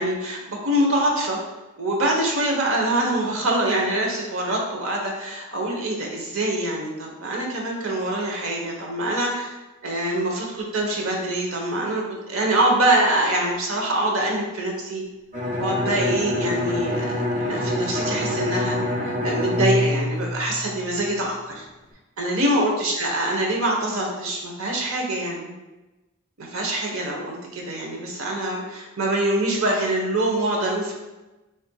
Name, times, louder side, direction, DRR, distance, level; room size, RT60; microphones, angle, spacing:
voice 1, 0.0-1.4 1.8-9.5 9.8-15.0 15.6-17.1 17.4-18.8 19.0-21.7 22.2-25.5 26.4-30.9, right 1 dB, 85° right, 0 dB, 0.9 m, -24 dB
Bowed string instrument, 15.3-21.0, left 1 dB, 35° right, 1.3 m, -26 dB
6.4 x 2.5 x 2.2 m, 1.1 s
head